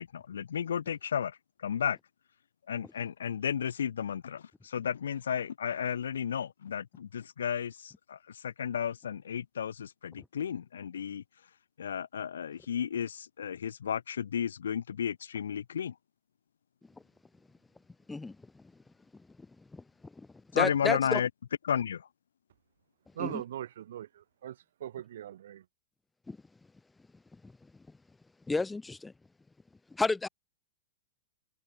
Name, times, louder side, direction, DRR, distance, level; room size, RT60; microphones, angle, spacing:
voice 1, 0.0-2.0 2.7-11.2 11.8-15.9 20.5-21.3 21.6-22.1, left 8 dB, 80° left, 0.5 m, -33 dB
voice 2, 20.5-21.2 23.2-23.4 26.3-26.4 27.4-27.5 28.5-29.1 29.9-30.3, left 3 dB, 10° left, 1.5 m, -31 dB
voice 3, 23.1-25.6, right 11 dB, 70° right, 1.3 m, -40 dB
hypercardioid pair, 105°, 0 cm